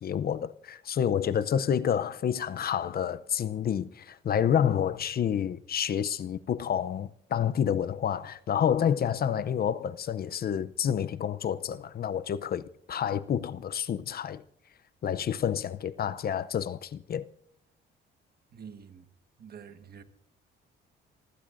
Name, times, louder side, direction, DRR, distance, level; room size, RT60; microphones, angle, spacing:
voice 1, 0.0-14.4 15.0-17.2, left 9 dB, 50° left, 0.6 m, -29 dB
voice 2, 18.5-19.1 19.4-20.0, right 7 dB, 50° right, 1.5 m, -47 dB
27.5 x 15.0 x 2.6 m
cardioid pair, 90°, 20 cm